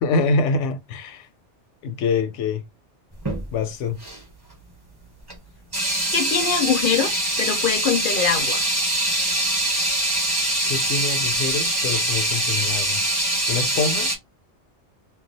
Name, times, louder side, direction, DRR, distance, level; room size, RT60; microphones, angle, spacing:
voice 1, 0.0-1.3 1.8-2.6 3.5-4.0 10.7-13.0 13.5-14.1, left 4 dB, 85° left, 0.9 m, -25 dB
sound 1, 3.2-3.4 4.0-4.2 5.3-5.4 5.7-14.2, right 1 dB, 20° right, 1.0 m, -23 dB
voice 2, 6.1-8.7, left 7 dB, 55° left, 0.6 m, -23 dB
2.3 x 2.3 x 3.9 m
omnidirectional pair, 1.2 m